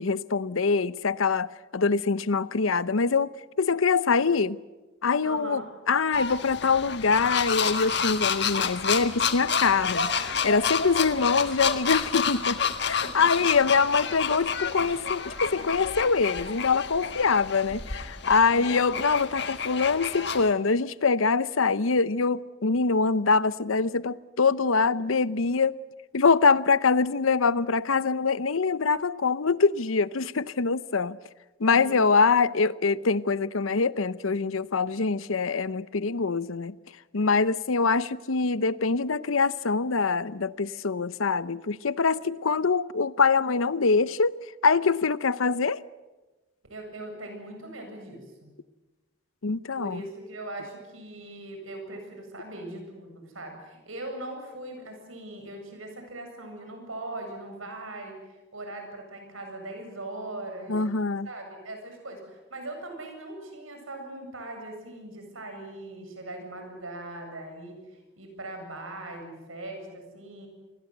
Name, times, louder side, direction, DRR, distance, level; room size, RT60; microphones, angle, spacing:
voice 1, 0.0-4.6 5.0-5.6 5.9-10.1 10.4-12.6 12.8-25.7 26.1-31.2 31.6-36.7 37.1-44.3 44.6-45.8 49.4-50.0 60.7-61.3, left 4 dB, 85° left, 0.8 m, -24 dB
voice 2, 5.2-5.7 13.0-13.2 18.3-18.9 31.7-32.4 46.7-48.5 49.8-60.8 61.2-67.8 68.2-70.5, right 2 dB, 85° right, 8.0 m, -40 dB
sound 1, 6.1-20.5, left 6 dB, 55° left, 1.6 m, -29 dB
29.0 x 21.5 x 8.0 m
head